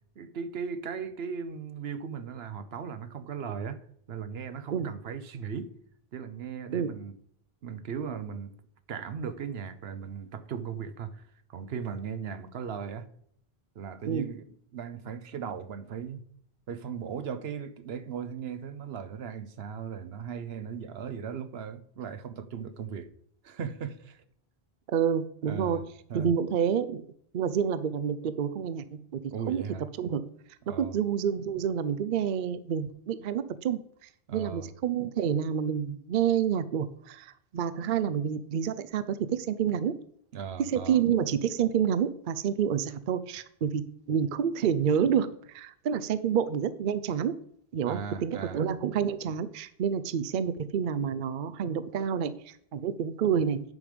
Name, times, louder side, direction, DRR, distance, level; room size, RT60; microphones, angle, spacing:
voice 1, 0.2-3.8 4.1-5.7 6.1-7.2 7.6-8.5 8.9-11.2 11.5-13.1 13.8-14.4 14.7-16.2 16.7-23.1 23.4-24.2 25.5-25.8 26.1-26.3 29.3-29.8 30.7-31.0 34.3-34.7 40.3-41.0 47.8-48.6, right 7 dB, 80° right, 1.0 m, -37 dB
voice 2, 24.9-25.8 26.1-27.0 27.3-29.2 29.5-29.7 30.0-30.2 30.7-40.0 40.6-47.4 47.7-53.6, right 8 dB, 60° right, 0.7 m, -28 dB
9.5 x 5.2 x 5.0 m
omnidirectional pair, 1.0 m